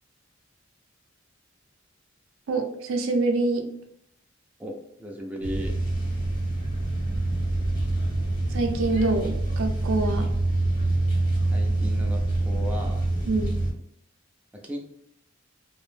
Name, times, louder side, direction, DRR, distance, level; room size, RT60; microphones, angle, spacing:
voice 1, 2.5-3.7 8.5-10.3 13.3-13.6, right 2 dB, 75° right, 4 dB, 0.5 m, -25 dB
voice 2, 4.6-5.8 11.5-13.0 14.5-14.8, equal, 5° right, -1 dB, 0.3 m, -36 dB
sound 1, 5.4-13.7, right 2 dB, 45° left, 1.0 m, -26 dB
2.5 x 2.1 x 3.2 m, 0.71 s
head